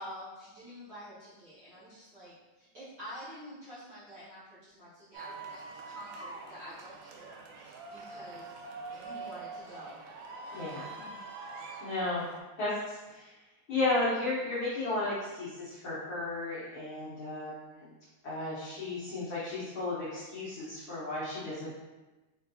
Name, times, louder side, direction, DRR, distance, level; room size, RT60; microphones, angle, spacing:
voice 1, 0.0-8.6 8.9-10.0, equal, 70° right, -12 dB, 1.1 m, -48 dB
sound 1, 5.1-12.4, right 4 dB, 90° right, 2.1 m, -44 dB
voice 2, 10.5-11.1 11.8-12.3 12.6-13.3 13.7-17.9 18.2-21.7, left 2 dB, 85° left, -11 dB, 1.1 m, -34 dB
5.7 x 2.2 x 2.7 m, 1.1 s
omnidirectional pair, 3.6 m